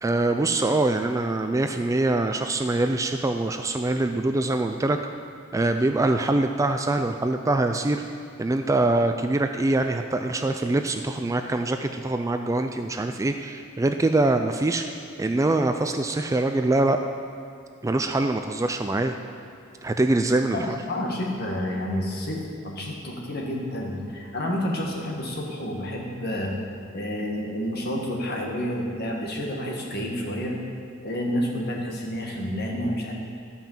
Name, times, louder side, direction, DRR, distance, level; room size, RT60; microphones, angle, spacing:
voice 1, 0.0-5.0 5.5-8.0 8.4-14.8 15.2-17.0 17.8-19.1 19.8-20.6, right 2 dB, 15° right, 6 dB, 0.3 m, -24 dB
voice 2, 20.5-26.5 26.9-30.5 31.0-33.2, equal, 50° left, -1 dB, 1.8 m, -29 dB
12.5 x 5.6 x 7.3 m, 2.4 s
head